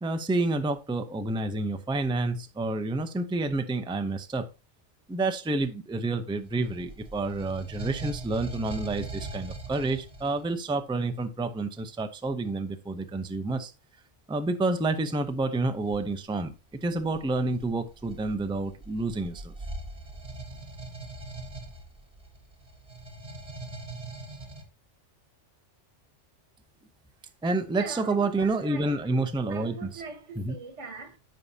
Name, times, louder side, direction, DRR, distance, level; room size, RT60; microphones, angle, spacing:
voice 1, 0.0-4.5 5.1-13.7 14.3-16.5 16.8-19.5 27.4-30.0 30.4-30.6, right 2 dB, 5° right, 0.4 m, -29 dB
sound 1, 6.4-10.5 15.8-16.1 16.8-24.6, right 2 dB, 30° right, 1.5 m, -41 dB
voice 2, 27.7-29.0 29.5-31.2, right 4 dB, 80° right, 1.6 m, -41 dB
14.5 x 4.9 x 2.7 m
omnidirectional pair, 1.2 m